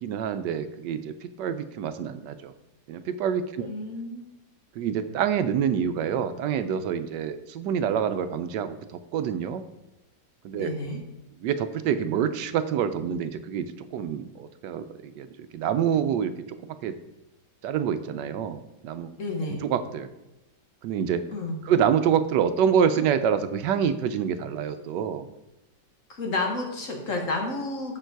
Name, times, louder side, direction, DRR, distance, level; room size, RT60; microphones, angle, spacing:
voice 1, 0.0-2.5 2.9-3.7 4.8-8.8 9.1-9.6 10.4-10.7 11.4-15.3 15.5-16.3 16.7-16.9 17.6-19.1 19.6-20.1 20.8-21.2 21.6-25.3, right 8 dB, 80° right, 10 dB, 1.2 m, -26 dB
voice 2, 3.6-4.3 10.5-11.0 19.2-19.6 21.3-21.6 26.1-28.0, left 2 dB, 50° left, 2 dB, 1.4 m, -31 dB
6.8 x 6.2 x 4.6 m, 0.96 s
omnidirectional pair, 1.9 m